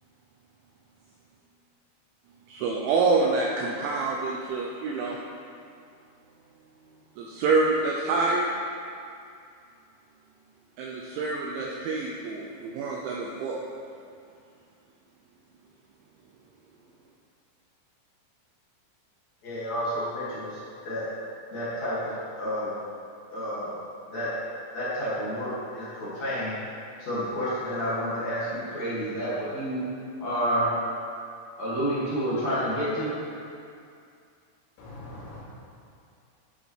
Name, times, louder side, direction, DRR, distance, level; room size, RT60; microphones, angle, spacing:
voice 1, 2.5-5.2 7.2-8.5 10.8-13.6, right 3 dB, 80° right, -2 dB, 2.7 m, -27 dB
voice 2, 19.4-20.6 20.8-21.1 21.5-22.0 22.4-22.7 23.3-23.7 24.1-24.3 24.7-26.5 27.0-29.8 30.2-30.7 31.6-33.1, equal, 45° left, -11 dB, 2.6 m, -29 dB
voice 3, 34.8-35.4, left 2 dB, 65° left, -10 dB, 5.0 m, -42 dB
11.0 x 8.1 x 3.3 m, 2.4 s
omnidirectional pair, 5.9 m